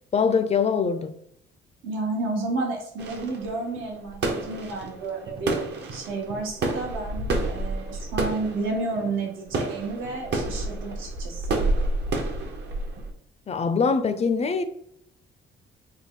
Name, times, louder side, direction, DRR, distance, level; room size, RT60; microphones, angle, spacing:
voice 1, 0.1-1.2 13.5-14.6, left 5 dB, 35° left, 0.4 m, -23 dB
voice 2, 1.8-5.6 5.9-11.6, right 3 dB, 90° right, 1.0 m, -31 dB
sound 1, 3.0-13.1, right 2 dB, 60° right, 0.7 m, -30 dB
3.6 x 2.3 x 3.6 m
cardioid pair, 90°, 20 cm